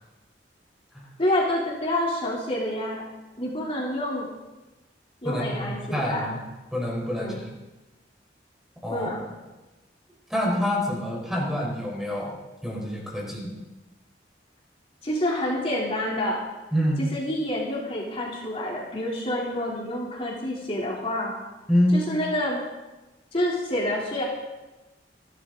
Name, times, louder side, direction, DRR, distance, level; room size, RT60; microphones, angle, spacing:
voice 1, 1.2-3.0 3.4-4.3 5.2-6.3 7.2-7.4 8.9-9.3 15.0-16.4 17.1-21.3 21.9-22.6 23.3-24.2, left 1 dB, 35° left, -4 dB, 3.5 m, -28 dB
voice 2, 5.2-6.4 6.7-7.5 8.8-9.1 10.3-12.3 12.6-13.5 16.7-17.0 21.7-22.0, equal, ahead, -3 dB, 4.5 m, -26 dB
28.5 x 12.5 x 4.0 m, 1.1 s
head